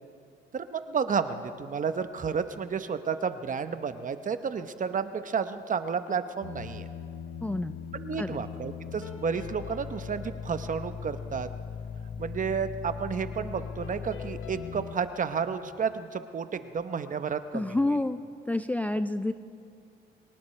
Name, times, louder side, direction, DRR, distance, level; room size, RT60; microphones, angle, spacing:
voice 1, 0.5-6.9 7.9-11.5 12.2-17.8, right 6 dB, 40° right, 10 dB, 0.9 m, -31 dB
sound 1, 6.4-15.0, left 7 dB, 85° left, 1.1 m, -39 dB
voice 2, 7.4-7.8 8.2-8.4 17.5-18.2 18.5-19.3, left 2 dB, 10° left, 10 dB, 0.4 m, -28 dB
23.5 x 19.0 x 3.3 m, 2.5 s
cardioid pair, 90°, 20 cm